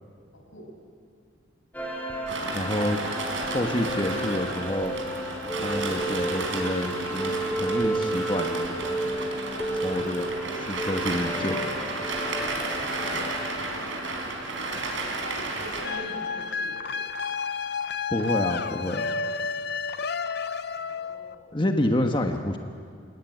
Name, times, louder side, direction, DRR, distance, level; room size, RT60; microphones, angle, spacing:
voice 1, 0.3-0.8 2.8-3.1 3.4-4.0 13.0-13.3 15.2-17.0 20.7-21.5, equal, 85° left, 1 dB, 6.6 m, -44 dB
sound 1, 1.7-15.9, right 1 dB, 10° left, 3.1 m, -33 dB
sound 2, 2.3-15.9, right 2 dB, 80° right, 4.5 m, -32 dB
voice 2, 2.5-3.0 3.5-4.9 5.6-8.7 9.0-9.2 9.7-11.6 13.2-13.3 18.1-19.1 21.5-22.6, left 1 dB, 25° left, 4 dB, 1.3 m, -28 dB
sound 3, 15.8-21.3, left 5 dB, 55° left, 0.6 m, -31 dB
30.0 x 18.0 x 9.4 m, 2.2 s
head